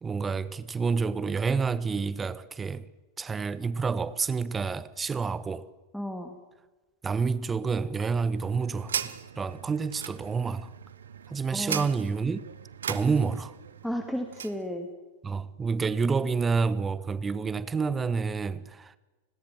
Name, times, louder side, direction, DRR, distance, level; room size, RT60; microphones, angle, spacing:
voice 1, 0.0-2.9 3.2-5.7 7.0-10.7 11.3-12.4 12.9-13.6 15.2-19.0, right 5 dB, 15° right, 1.2 m, -29 dB
voice 2, 5.9-6.4 11.5-11.8 13.8-14.9, equal, ahead, 2.4 m, -33 dB
sound 1, 8.0-14.6, right 8 dB, 65° right, 1.3 m, -39 dB
30.0 x 21.0 x 7.6 m
figure-of-eight pair, 90°, 0 cm